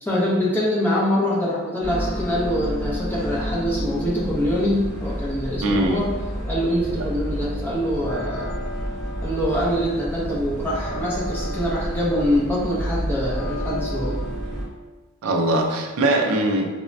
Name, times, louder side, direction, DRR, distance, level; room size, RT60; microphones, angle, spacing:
voice 1, 0.0-6.1 6.5-8.6 9.2-14.2, equal, 10° left, -6 dB, 0.4 m, -24 dB
sound 1, 1.8-14.6, equal, 10° right, 1.3 m, -30 dB
voice 2, 5.6-6.0 15.2-16.7, right 2 dB, 75° right, 2 dB, 0.4 m, -21 dB
3.1 x 2.1 x 2.5 m, 1.2 s
head